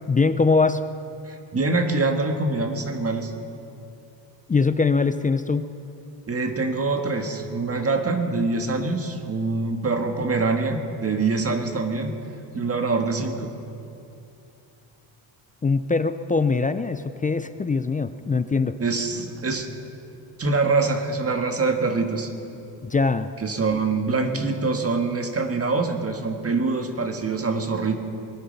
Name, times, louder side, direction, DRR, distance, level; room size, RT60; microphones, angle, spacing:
voice 1, 0.1-0.8 4.5-5.7 15.6-18.8 22.8-23.3 24.2-24.4, left 4 dB, 20° left, 11 dB, 0.4 m, -22 dB
voice 2, 1.3-3.3 6.3-12.1 12.5-13.5 18.8-19.7 20.4-22.3 23.4-27.9, right 3 dB, 30° right, 5 dB, 1.5 m, -24 dB
22.0 x 11.0 x 5.4 m, 2.7 s
cardioid pair, 105°, 47 cm